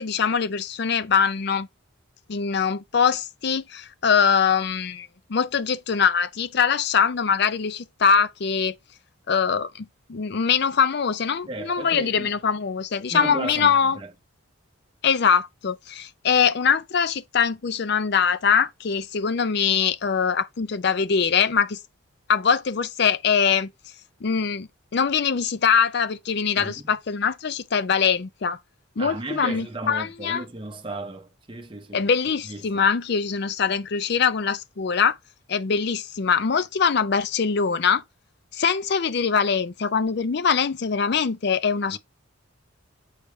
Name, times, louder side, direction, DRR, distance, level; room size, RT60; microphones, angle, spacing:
voice 1, 0.0-1.7 2.3-8.7 9.3-14.0 15.0-21.8 22.3-23.7 24.2-28.6 29.0-30.4 31.9-35.2 35.5-38.0 38.5-42.0, left 6 dB, 50° left, 0.5 m, -23 dB
voice 2, 11.5-12.3 13.1-14.1 26.6-27.0 29.0-32.1 32.4-32.9 41.9-42.0, right 2 dB, 25° right, 0.7 m, -35 dB
6.8 x 5.0 x 3.2 m
head